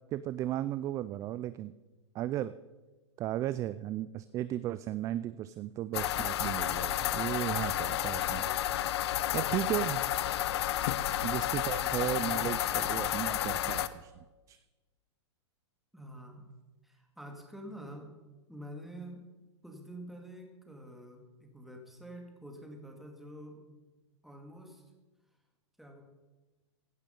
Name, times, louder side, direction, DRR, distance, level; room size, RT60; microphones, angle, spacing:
voice 1, 0.1-1.7 2.1-2.6 3.2-8.4 9.3-10.0 11.2-14.1 14.5-14.6, right 13 dB, 20° right, 15 dB, 0.3 m, -35 dB
sound 1, 5.9-13.9, left 12 dB, 60° left, 0.8 m, -31 dB
voice 2, 9.6-9.9 10.7-11.2 15.9-16.5 16.8-18.1 18.5-19.3 19.6-23.8 24.2-24.8 25.8-26.0, equal, ahead, 2 dB, 2.3 m, -47 dB
16.0 x 11.5 x 5.3 m, 1.2 s
hypercardioid pair, 140°, 15 cm